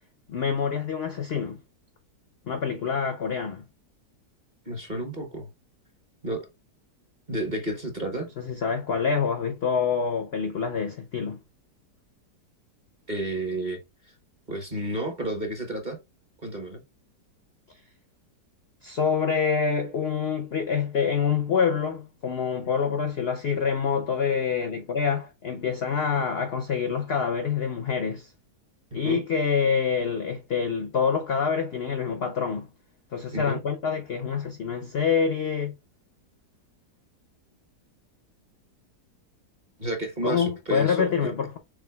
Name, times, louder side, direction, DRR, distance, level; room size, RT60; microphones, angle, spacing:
voice 1, 0.3-1.6 2.5-3.6 8.4-11.4 18.8-28.3 28.9-32.7 33.1-35.7 40.2-41.6, left 6 dB, 70° left, 0.6 m, -26 dB
voice 2, 4.7-5.5 6.2-6.4 7.3-8.3 13.1-13.8 14.5-16.0 16.4-16.8 26.1-26.2 28.9-29.2 33.3-33.6 39.8-41.3, right 1 dB, 35° right, 0.9 m, -31 dB
4.8 x 3.6 x 2.2 m
omnidirectional pair, 1.8 m